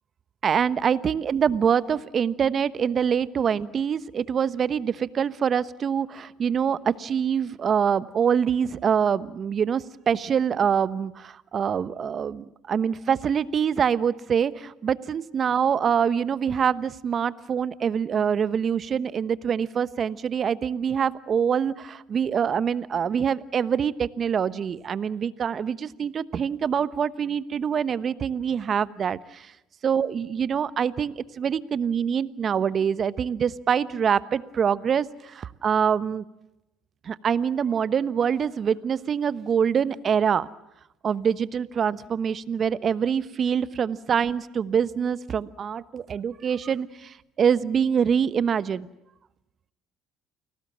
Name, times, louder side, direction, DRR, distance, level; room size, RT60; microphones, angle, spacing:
voice 1, 0.4-29.5 29.8-36.2 37.0-40.5 41.0-48.9, right 7 dB, 45° right, 16 dB, 1.0 m, -25 dB
29.5 x 19.5 x 7.4 m, 0.93 s
hypercardioid pair, 65°, 0 cm